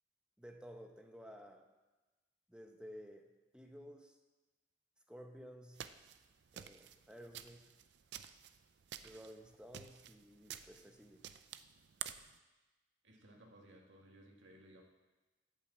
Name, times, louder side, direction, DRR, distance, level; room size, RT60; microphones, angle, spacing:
voice 1, 0.4-1.7 2.5-4.2 5.1-5.8 6.5-7.7 9.0-11.3, equal, 5° right, 3 dB, 0.9 m, -54 dB
sound 1, 5.8-12.4, right 10 dB, 65° right, 0.5 m, -51 dB
voice 2, 13.0-14.8, right 1 dB, 85° right, 0 dB, 2.0 m, -60 dB
8.7 x 8.2 x 7.3 m, 1.2 s
head